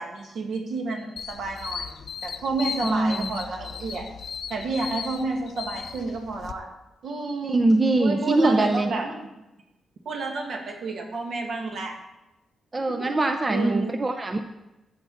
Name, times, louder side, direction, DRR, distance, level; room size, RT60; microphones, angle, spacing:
voice 1, 0.0-2.0 2.2-4.1 4.5-6.7 7.0-7.6 8.0-9.2 10.1-12.0 12.9-13.1 13.5-14.0, right 3 dB, 60° right, 2 dB, 1.9 m, -30 dB
sound 1, 1.2-6.5, left 7 dB, 50° left, 0.6 m, -36 dB
voice 2, 2.8-3.3 7.5-8.9 12.7-14.4, right 2 dB, 20° right, 6 dB, 0.5 m, -22 dB
14.0 x 8.0 x 4.2 m, 0.98 s
wide cardioid pair, 175°, 0 cm